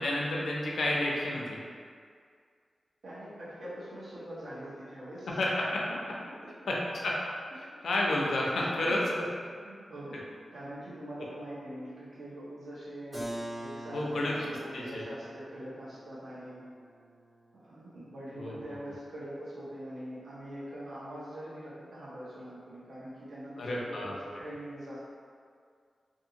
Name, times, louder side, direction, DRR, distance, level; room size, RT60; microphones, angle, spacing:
voice 1, 0.0-1.6 5.4-6.0 6.7-6.8 7.0-7.1 7.6-9.3 13.9-14.3 14.7-15.0 18.4-18.5 23.6-24.2, left 1 dB, 85° left, -4 dB, 0.5 m, -30 dB
voice 2, 3.0-5.5 6.3-6.5 7.6-7.9 8.6-9.0 9.5-13.3 13.6-16.7 17.5-25.0, equal, 90° right, -8 dB, 0.8 m, -43 dB
Keyboard (musical), 13.1-18.7, right 1 dB, 35° right, 1.0 m, -45 dB
2.6 x 2.5 x 2.7 m, 2.1 s
wide cardioid pair, 145°, 0 cm